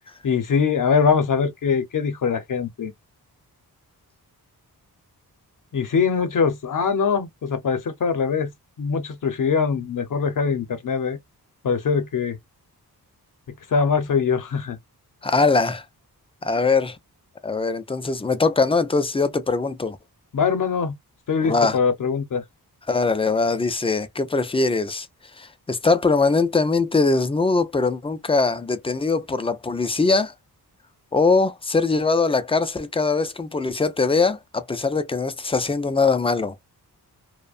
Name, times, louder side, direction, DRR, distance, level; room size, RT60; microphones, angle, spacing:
voice 1, 0.2-2.9 5.7-8.5 8.8-11.2 11.6-12.4 13.7-14.8 20.3-21.0 21.3-22.4, left 6 dB, 55° left, 0.7 m, -22 dB
voice 2, 15.2-15.8 16.4-17.0 17.4-20.0 21.4-21.8 22.9-25.1 25.4-30.3 31.1-36.5, left 3 dB, 15° left, 0.3 m, -21 dB
2.5 x 2.1 x 2.4 m
wide cardioid pair, 100°, 38 cm